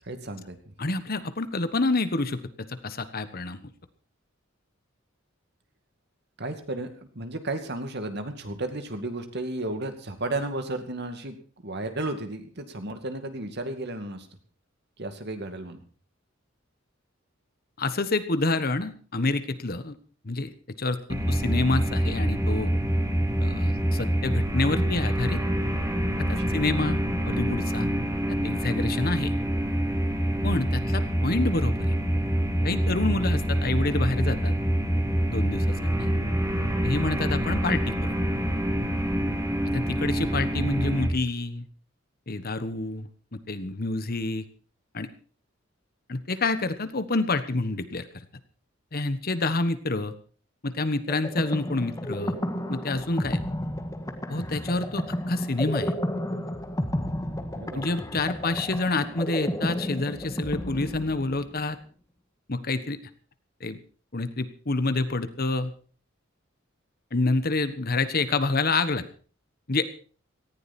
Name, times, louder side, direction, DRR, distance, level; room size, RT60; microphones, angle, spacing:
voice 1, 0.0-0.7 6.4-6.9 7.1-11.4 11.6-14.3 15.0-15.8 26.5-26.6 57.5-57.8, right 2 dB, 55° right, 7 dB, 2.4 m, -33 dB
voice 2, 0.8-3.7 17.8-20.0 20.2-20.5 20.8-22.7 23.4-25.4 26.2-27.9 28.3-29.3 30.4-31.9 32.6-34.5 35.3-36.1 36.8-38.1 39.7-41.7 42.3-44.5 44.9-45.1 46.1-48.3 48.9-50.1 50.6-52.4 52.7-53.4 54.3-55.9 57.7-61.8 62.5-63.0 63.6-63.8 64.1-65.7 67.1-69.0 69.7-69.9, left 3 dB, 50° left, 12 dB, 1.3 m, -28 dB
sound 1, 21.1-41.1, equal, 15° right, 2.9 m, -26 dB
sound 2, 51.1-61.6, equal, 15° left, 1.8 m, -32 dB
18.5 x 15.0 x 4.4 m, 0.39 s
head